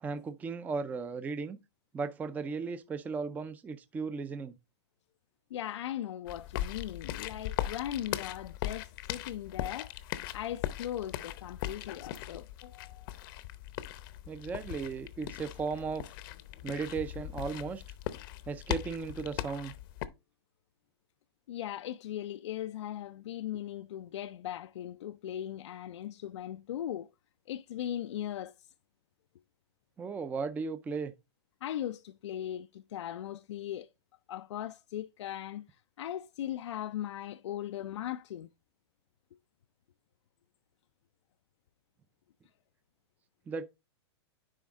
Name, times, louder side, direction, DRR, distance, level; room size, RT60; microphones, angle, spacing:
voice 1, 0.0-1.6 1.9-4.5 14.3-16.0 16.6-17.8 18.5-19.7 30.0-31.1 43.5-43.6, right 5 dB, 10° right, 0.4 m, -36 dB
voice 2, 5.5-9.9 10.3-13.1 21.5-27.1 27.5-28.5 31.6-33.9 34.3-35.6 36.0-38.5, left 11 dB, 85° left, 0.4 m, -38 dB
sound 1, 6.3-20.1, left 13 dB, 50° left, 0.7 m, -39 dB
9.9 x 3.6 x 3.5 m
hypercardioid pair, 145°, 15 cm